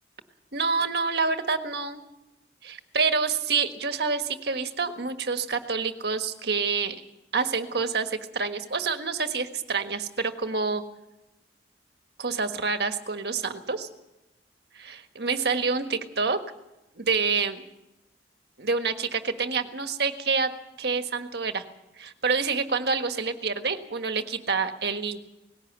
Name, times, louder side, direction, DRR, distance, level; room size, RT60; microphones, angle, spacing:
voice 1, 0.5-2.0 2.6-7.0 7.3-10.8 12.2-13.9 14.7-16.4 16.9-17.6 18.6-20.5 20.8-21.6 22.0-25.2, right 4 dB, 65° right, 7 dB, 1.5 m, -27 dB
19.5 x 16.5 x 8.2 m, 0.95 s
head